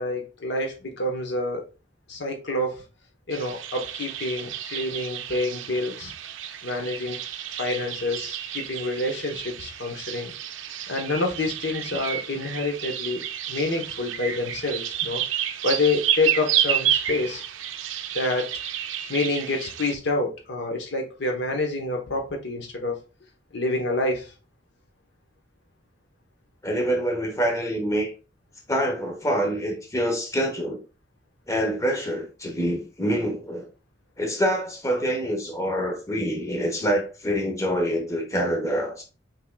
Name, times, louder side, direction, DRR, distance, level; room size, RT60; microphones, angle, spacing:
voice 1, 0.0-1.6 2.1-2.8 3.3-6.1 6.6-7.3 7.6-10.3 10.9-15.2 15.6-17.4 18.1-18.5 19.1-23.0 23.5-24.3, left 2 dB, 65° left, 3 dB, 0.9 m, -27 dB
sound 1, 3.3-20.0, right 10 dB, 85° right, 0.5 m, -30 dB
voice 2, 26.6-28.1 28.7-30.8 31.5-33.7 34.2-39.0, equal, 15° left, 2 dB, 0.9 m, -26 dB
5.8 x 3.6 x 2.2 m, 0.33 s
head